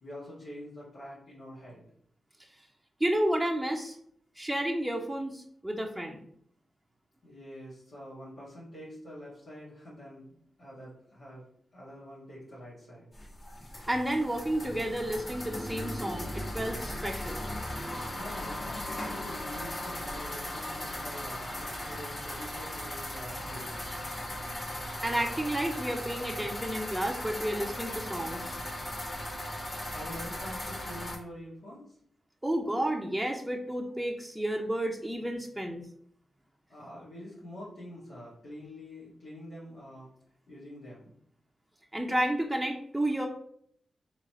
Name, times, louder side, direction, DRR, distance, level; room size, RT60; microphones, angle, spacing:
voice 1, 0.0-1.8 7.2-11.5 11.7-13.1 18.2-23.8 29.9-32.0 36.7-40.1 40.5-41.2, left 1 dB, 75° left, -9 dB, 1.6 m, -46 dB
voice 2, 3.0-4.0 4.4-6.2 13.9-17.4 25.0-28.6 32.4-35.8 41.9-43.3, right 1 dB, 10° right, 1 dB, 0.7 m, -31 dB
sound 1, 13.1-31.2, left 1 dB, 45° left, 1.5 m, -37 dB
3.8 x 3.2 x 4.3 m, 0.64 s
supercardioid pair, 40°, 0 cm